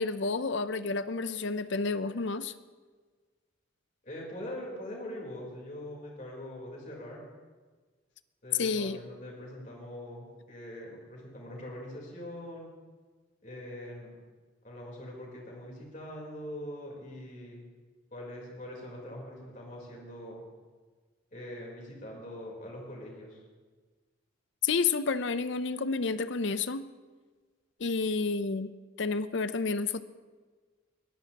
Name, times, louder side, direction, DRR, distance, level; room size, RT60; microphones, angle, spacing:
voice 1, 0.0-2.5 8.6-9.0 24.6-26.9 27.8-28.7 29.0-30.0, left 4 dB, 65° left, 13 dB, 0.6 m, -30 dB
voice 2, 4.0-7.2 8.4-12.7 13.4-14.1 14.6-17.6 18.1-20.4 21.3-23.4, left 1 dB, 40° left, -2 dB, 3.9 m, -43 dB
21.0 x 14.5 x 3.0 m, 1.4 s
head